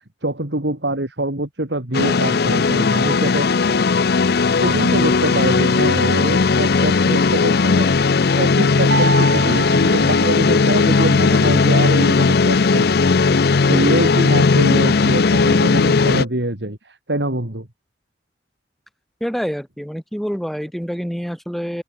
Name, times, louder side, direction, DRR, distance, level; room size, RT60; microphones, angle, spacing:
voice 1, 0.2-3.8 4.6-7.9 8.3-13.4 13.6-17.7, right 1 dB, 70° right, 3.0 m, -25 dB
sound 1, 1.9-16.2, left 4 dB, 55° left, 0.6 m, -16 dB
sound 2, 8.9-11.1, right 4 dB, 85° right, 2.8 m, -27 dB
voice 2, 19.2-21.8, equal, ahead, 4.2 m, -26 dB
head